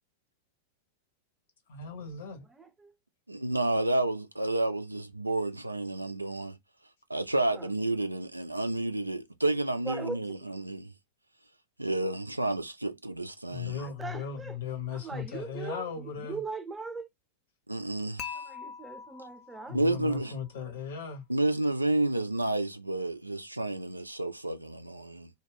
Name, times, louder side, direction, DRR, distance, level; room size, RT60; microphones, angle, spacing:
voice 1, 1.7-2.5 13.5-16.4 19.7-21.2, left 6 dB, 60° left, 0.9 m, -37 dB
voice 2, 2.5-2.9 7.5-7.7 9.9-10.2 13.8-14.6 14.9-17.1 18.3-20.8, right 4 dB, 10° right, 0.7 m, -41 dB
voice 3, 3.3-6.6 7.1-10.9 11.8-13.9 17.7-18.4 19.7-20.3 21.3-25.3, right 2 dB, 90° right, 0.4 m, -30 dB
Dishes pots and pans / Chink clink, 18.2-20.3, left 7 dB, 35° left, 0.4 m, -43 dB
2.2 x 2.2 x 3.4 m
figure-of-eight pair, 95°, 0 cm